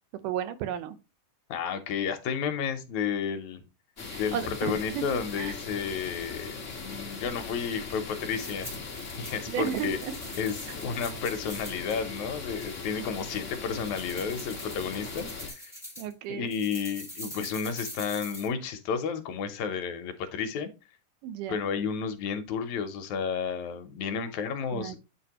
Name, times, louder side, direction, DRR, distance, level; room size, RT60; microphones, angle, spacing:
voice 1, 0.2-1.0 4.1-5.0 5.4-5.6 9.5-10.1 16.0-16.5 21.2-21.6 24.7-25.0, right 9 dB, 85° right, 2.5 m, -33 dB
voice 2, 1.5-3.6 4.2-8.7 9.1-10.0 10.4-15.7 16.3-20.7 21.5-25.0, left 6 dB, 70° left, 2.1 m, -32 dB
sound 1, 4.0-15.5, left 4 dB, 35° left, 1.3 m, -39 dB
sound 2, 8.3-12.0 12.6-13.1 13.7-16.1 16.5-18.5, equal, ahead, 2.0 m, -44 dB
8.8 x 4.4 x 2.9 m
omnidirectional pair, 3.6 m